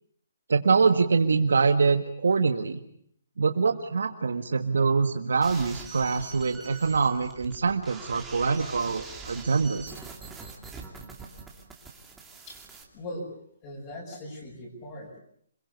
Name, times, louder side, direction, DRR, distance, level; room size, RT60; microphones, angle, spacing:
voice 1, 0.5-2.8 3.4-9.9, right 4 dB, 85° right, 6 dB, 1.7 m, -24 dB
sound 1, 5.4-12.8, right 4 dB, 5° right, 2.8 m, -44 dB
voice 2, 12.5-13.3 13.6-15.2, left 1 dB, 25° left, -3 dB, 6.4 m, -40 dB
27.0 x 22.0 x 8.2 m, 0.67 s
hypercardioid pair, 165°, 0 cm